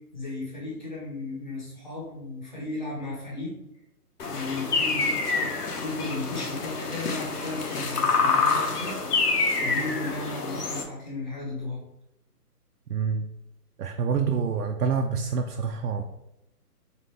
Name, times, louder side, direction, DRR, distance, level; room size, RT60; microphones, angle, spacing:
voice 1, 0.1-3.6 4.2-9.0 9.6-11.8, left 2 dB, 30° left, -3 dB, 1.0 m, -35 dB
sound 1, 4.2-10.8, left 4 dB, 70° left, 0.9 m, -27 dB
voice 2, 12.9-13.3 13.8-16.0, right 6 dB, 70° right, 4 dB, 0.5 m, -27 dB
4.3 x 2.8 x 3.3 m, 0.88 s
hypercardioid pair, 180°, 48 cm